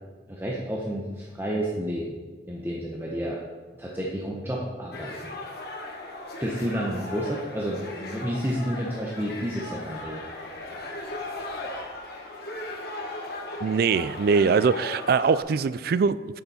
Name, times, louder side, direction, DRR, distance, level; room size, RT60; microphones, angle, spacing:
voice 1, 0.3-2.2 2.5-3.4 3.8-5.3 6.4-10.2, equal, 10° right, -3 dB, 0.9 m, -30 dB
sound 1, 4.9-15.4, left 2 dB, 60° left, 1.4 m, -37 dB
voice 2, 13.6-16.4, right 5 dB, 55° right, 15 dB, 0.3 m, -22 dB
10.5 x 6.7 x 4.3 m, 1.4 s
head